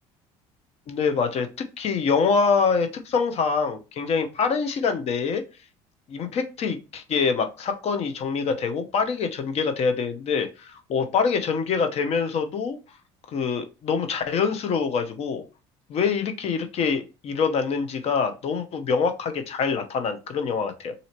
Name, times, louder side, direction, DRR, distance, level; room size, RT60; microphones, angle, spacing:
voice 1, 0.9-5.4 6.1-12.8 13.3-15.4 15.9-20.9, left 5 dB, 50° left, 7 dB, 0.8 m, -25 dB
4.2 x 2.8 x 2.8 m, 0.29 s
supercardioid pair, 100°, 14 cm